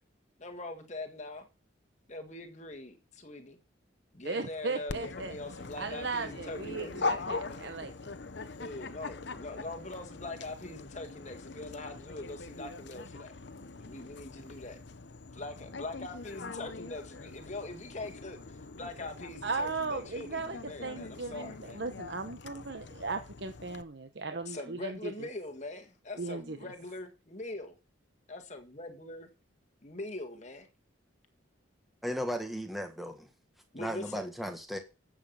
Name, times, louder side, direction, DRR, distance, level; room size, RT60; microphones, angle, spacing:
voice 1, 0.4-1.5 2.1-3.6 4.1-7.8 8.6-13.3 13.8-14.8 15.3-21.8 24.5-27.8 28.3-29.3 29.8-30.7 33.7-34.3, left 2 dB, 35° left, 1.9 m, -42 dB
voice 2, 4.2-5.3 5.8-8.1 19.4-25.3 26.2-26.6, right 3 dB, 60° right, 1.0 m, -37 dB
Dog, 4.9-23.8, left 3 dB, 60° left, 0.8 m, -42 dB
voice 3, 32.0-33.3 33.8-34.8, equal, ahead, 1.6 m, -36 dB
12.5 x 7.7 x 5.6 m
head